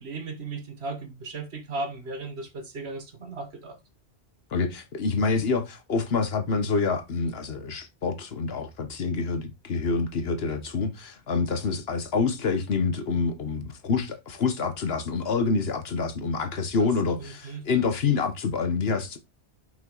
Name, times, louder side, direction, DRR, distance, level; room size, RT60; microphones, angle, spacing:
voice 1, 0.0-3.8 16.8-16.9 17.2-17.6, right 3 dB, 70° right, 1.6 m, -36 dB
voice 2, 4.5-19.2, left 4 dB, 65° left, 1.2 m, -27 dB
5.7 x 5.6 x 3.9 m
omnidirectional pair, 1.1 m